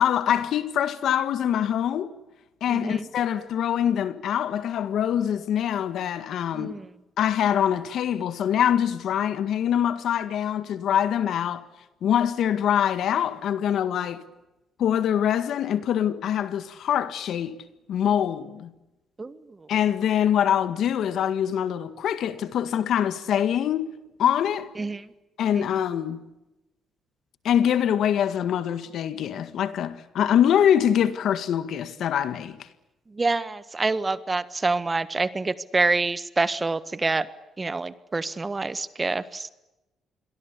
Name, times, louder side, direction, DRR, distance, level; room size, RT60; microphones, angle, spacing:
voice 1, 0.0-2.2 2.6-6.7 7.2-11.7 12.0-14.2 14.8-17.6 17.9-18.7 19.7-24.7 25.4-26.2 27.4-32.6, left 9 dB, 70° left, 1.8 m, -24 dB
voice 2, 2.7-3.1 6.5-6.9 19.2-19.4 24.8-25.1 25.6-25.7 33.1-37.3 37.6-39.5, right 3 dB, 25° right, 1.4 m, -26 dB
28.0 x 22.5 x 8.4 m
cardioid pair, 90°, 0 cm